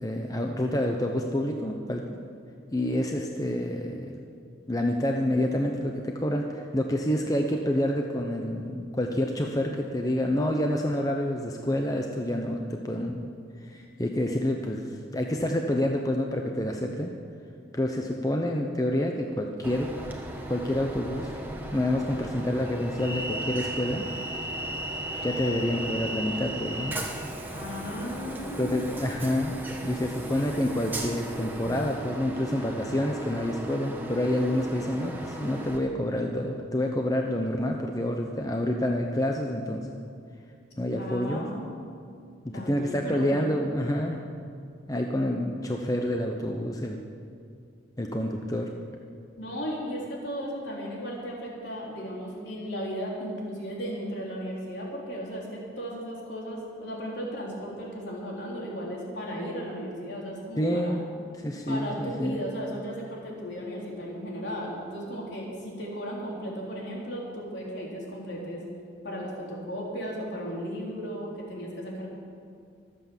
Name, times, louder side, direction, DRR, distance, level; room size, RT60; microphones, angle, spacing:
voice 1, 0.0-2.2 2.7-4.2 4.7-13.3 13.6-17.1 17.7-19.9 20.5-21.3 21.7-24.1 25.2-27.0 28.6-39.9 40.8-41.5 42.4-44.2 44.9-47.0 48.0-48.7 60.6-61.0 61.3-62.4, left 1 dB, 20° left, 2 dB, 0.8 m, -28 dB
Train, 19.6-35.8, right 1 dB, 10° right, 1.3 m, -36 dB
voice 2, 27.5-28.9 41.0-41.8 42.5-43.5 49.4-61.0 61.7-68.6 69.0-72.1, equal, 65° left, -3 dB, 4.1 m, -35 dB
24.0 x 8.2 x 7.3 m, 2.4 s
head